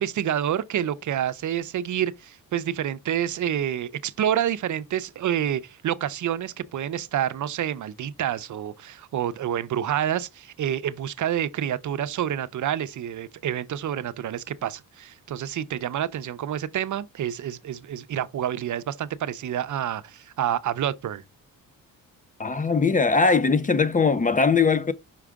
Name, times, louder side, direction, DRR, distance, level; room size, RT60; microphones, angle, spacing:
voice 1, 0.0-21.2, right 10 dB, 60° right, 0.6 m, -28 dB
voice 2, 22.4-24.9, left 4 dB, 25° left, 0.5 m, -20 dB
5.9 x 4.8 x 3.5 m
cardioid pair, 105°, 34 cm